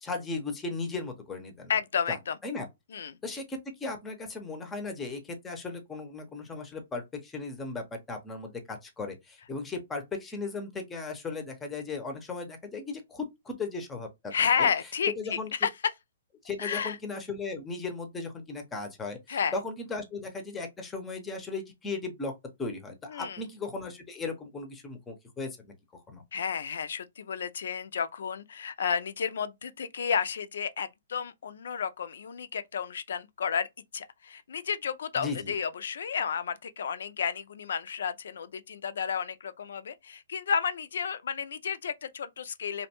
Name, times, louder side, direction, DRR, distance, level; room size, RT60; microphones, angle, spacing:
voice 1, 0.0-1.7 2.1-2.7 3.2-14.7 15.2-15.5 16.4-22.3 22.6-25.7 25.9-26.2 35.2-35.5, left 3 dB, 15° left, 0.5 m, -37 dB
voice 2, 1.7-2.4 2.9-3.2 14.3-15.7 16.6-17.0 19.3-19.5 23.1-23.4 26.3-33.7 33.9-42.9, left 7 dB, 70° left, 0.3 m, -31 dB
2.5 x 2.1 x 2.8 m
hypercardioid pair, 145°, 0 cm